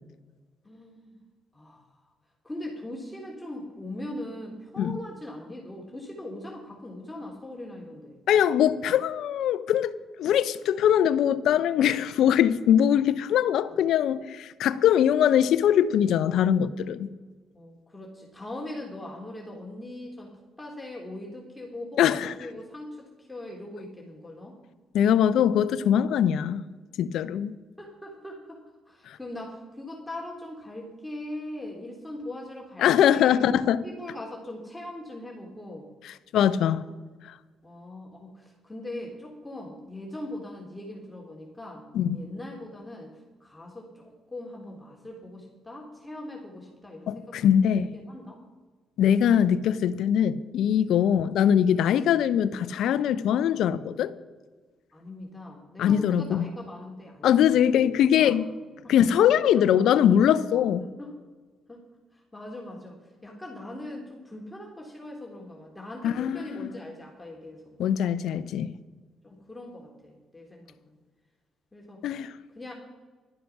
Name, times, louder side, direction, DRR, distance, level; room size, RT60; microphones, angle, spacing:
voice 1, 0.6-1.2 1.5-1.8 2.4-8.2 13.7-13.8 17.5-22.1 22.4-24.6 27.8-28.6 28.9-33.5 33.8-35.9 37.6-41.8 42.1-43.1 43.4-47.3 47.8-48.4 49.0-49.1 51.0-51.2 54.9-57.3 58.0-58.4 58.8-58.9 59.5-60.4 60.8-61.1 61.7-61.8 62.3-67.8 69.2-70.9 71.7-72.0 72.5-72.7, left 1 dB, 10° left, 3.3 m, -40 dB
voice 2, 8.3-9.9 10.2-17.1 22.0-22.3 24.9-26.6 27.0-27.5 29.1-29.2 32.8-33.8 36.0-36.8 41.9-42.2 47.1-47.9 49.0-54.1 55.8-56.5 57.2-58.5 58.9-60.8 66.0-66.7 67.8-68.7 72.0-72.3, left 9 dB, 75° left, 0.6 m, -22 dB
12.0 x 11.0 x 5.9 m
supercardioid pair, 55°, 0 cm